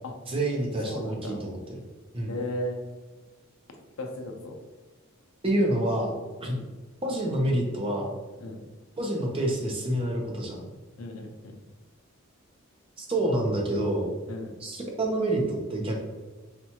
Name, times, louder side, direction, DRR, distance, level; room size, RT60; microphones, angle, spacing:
voice 1, 0.3-1.6 2.1-2.3 5.4-6.1 6.4-6.6 7.0-8.1 9.0-10.6 13.0-14.1 14.6-16.0, right 1 dB, 25° right, 0 dB, 0.6 m, -27 dB
voice 2, 0.9-1.4 2.3-2.8 4.0-4.5 6.4-6.7 8.4-8.6 11.0-11.5 14.3-14.6, left 1 dB, 80° left, 3 dB, 0.6 m, -35 dB
4.2 x 2.3 x 2.9 m, 1.2 s
head